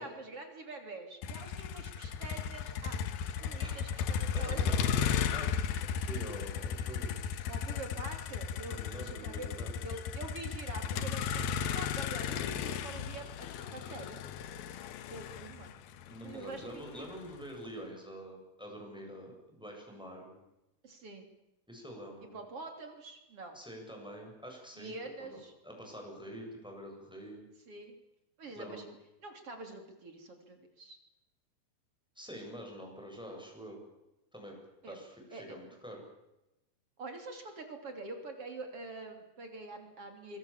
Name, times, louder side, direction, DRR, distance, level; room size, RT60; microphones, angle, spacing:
voice 1, 0.0-3.0 3.4-5.1 7.5-9.5 9.8-14.2 15.1-15.7 16.2-17.1 20.8-21.3 22.3-23.6 24.8-25.5 27.7-28.0 28.4-28.8 29.2-31.0 34.8-35.0 35.3-35.4 37.0-40.4, right 2 dB, 35° right, 5 dB, 3.4 m, -45 dB
Motor vehicle (road), 1.2-17.3, left 7 dB, 70° left, 2.8 m, -35 dB
voice 2, 4.3-7.2 8.6-9.7 16.1-20.4 21.7-22.4 23.5-27.5 28.5-28.9 32.1-33.8 34.3-34.6 34.9-36.0, equal, ahead, 1 dB, 7.5 m, -46 dB
25.5 x 24.0 x 7.3 m, 0.95 s
omnidirectional pair, 5.3 m